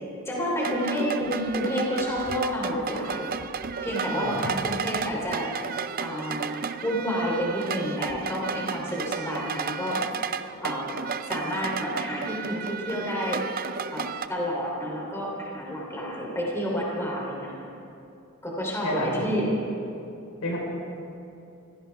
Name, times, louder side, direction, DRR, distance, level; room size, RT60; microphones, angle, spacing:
voice 1, 0.2-3.3 3.8-5.5 6.0-6.5 6.8-10.0 10.6-10.9 11.2-13.4 13.9-17.5 18.4-19.5, equal, 10° left, -3 dB, 3.2 m, -29 dB
sound 1, 0.6-14.3, right 6 dB, 40° right, 0.5 m, -33 dB
voice 2, 4.2-4.5 18.8-19.2 20.4-20.6, left 1 dB, 85° left, -2 dB, 4.4 m, -29 dB
24.5 x 16.5 x 3.5 m, 2.7 s
head